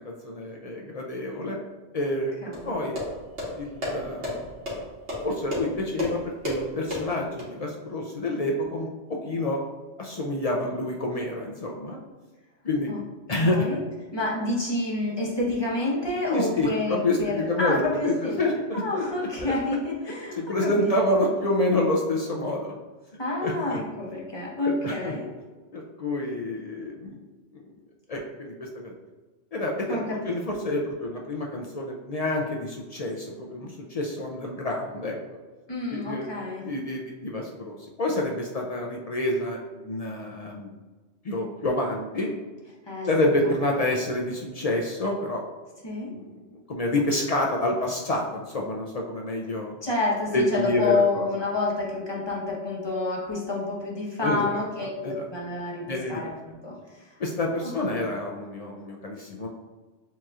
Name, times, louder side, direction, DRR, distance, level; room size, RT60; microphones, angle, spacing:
voice 1, 0.0-1.6 1.9-2.3 2.7-3.0 3.6-4.5 5.2-9.6 10.0-12.0 12.6-12.9 13.3-13.7 16.3-19.0 20.4-22.7 23.4-23.8 24.6-25.1 25.7-27.2 27.5-27.6 28.1-28.9 29.5-35.2 35.9-36.3 36.6-40.7 41.2-42.3 43.0-45.4 46.1-46.4 46.7-49.7 50.3-51.3 54.2-54.6 55.0-55.3 55.9-56.2 57.2-59.5, left 1 dB, 50° left, 0 dB, 0.4 m, -28 dB
voice 2, 2.4-2.8 12.9-13.0 13.4-13.8 14.1-18.4 18.7-21.1 23.2-25.3 29.9-30.6 35.7-36.7 42.9-43.3 45.8-46.1 49.8-57.1 57.6-57.7 58.0-58.1, left 2 dB, 25° left, -4 dB, 0.9 m, -29 dB
sound 1, 2.5-7.5, left 1 dB, 75° right, 1.7 m, -33 dB
7.3 x 3.0 x 2.4 m, 1.3 s
omnidirectional pair, 1.2 m